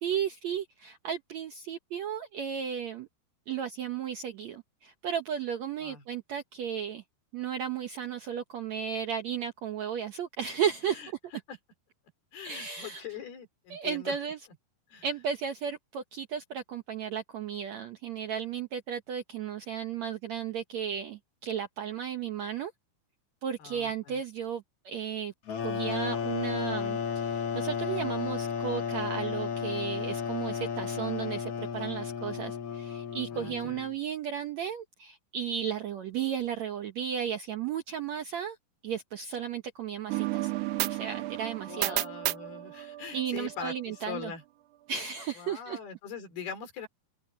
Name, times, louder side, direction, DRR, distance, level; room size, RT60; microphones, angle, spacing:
voice 1, 0.0-3.1 3.5-7.0 7.3-11.0 12.4-13.0 13.7-14.4 15.0-22.7 23.4-25.3 25.6-38.6 38.8-40.5 40.9-42.0 43.1-44.3 44.9-45.8, right 8 dB, 70° right, 1.7 m, -34 dB
voice 2, 12.3-14.2 14.9-15.1 23.6-24.2 33.3-33.8 41.7-44.4 45.4-46.9, left 7 dB, 70° left, 5.4 m, -42 dB
sound 1, 25.5-33.9, left 6 dB, 45° left, 2.6 m, -33 dB
sound 2, 40.1-43.7, right 16 dB, 85° right, 1.7 m, -32 dB
omnidirectional pair, 4.6 m